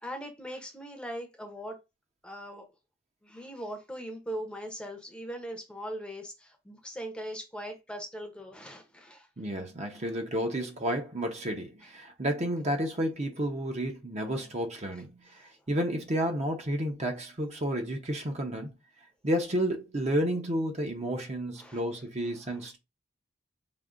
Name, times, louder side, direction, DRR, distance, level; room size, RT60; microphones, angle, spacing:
voice 1, 0.0-1.8 2.2-2.7 3.2-9.3 9.9-10.0 21.6-21.8 22.4-22.7, equal, 5° left, 0.7 m, -40 dB
voice 2, 9.4-18.7 19.2-22.8, right 1 dB, 35° right, 0.7 m, -31 dB
5.1 x 2.6 x 2.5 m
head